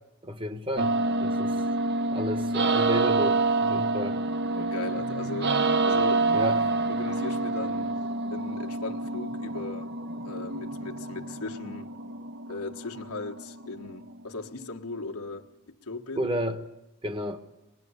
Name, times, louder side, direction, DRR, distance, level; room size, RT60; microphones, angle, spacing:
voice 1, 0.2-0.9 1.2-1.5 2.1-3.4 3.7-4.2 6.3-6.6 16.2-16.6 17.0-17.4, equal, 25° right, 1.3 m, -31 dB
sound 1, 0.8-14.7, right 3 dB, 50° right, 0.8 m, -27 dB
voice 2, 4.5-6.6 6.9-8.0 8.3-9.9 10.2-11.9 12.5-16.3, left 3 dB, 85° left, 1.4 m, -38 dB
24.5 x 21.0 x 9.6 m
head